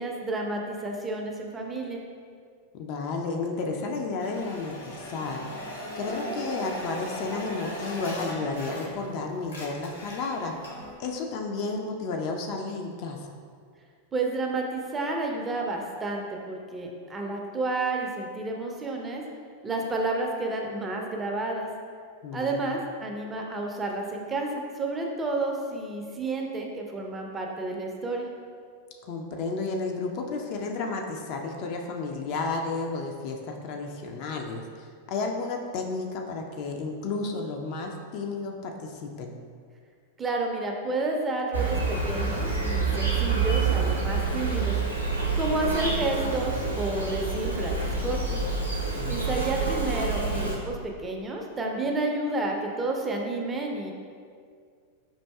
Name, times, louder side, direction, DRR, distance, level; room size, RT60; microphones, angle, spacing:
voice 1, 0.0-2.0 14.1-19.2 19.6-21.7 22.3-28.3 40.2-44.8 45.4-47.8 48.0-48.4 49.1-53.9, right 2 dB, 15° right, 1 dB, 0.4 m, -30 dB
voice 2, 2.7-5.5 6.0-10.6 11.0-13.3 22.2-22.7 29.1-39.4 49.0-49.5, left 3 dB, 45° left, 2 dB, 0.3 m, -32 dB
sound 1, 4.2-9.1 9.4-10.9, equal, 70° left, 0.8 m, -38 dB
Insect, 41.5-50.5, right 4 dB, 85° right, 0.5 m, -27 dB
5.3 x 2.5 x 2.2 m, 2.1 s
figure-of-eight pair, 90°, 0 cm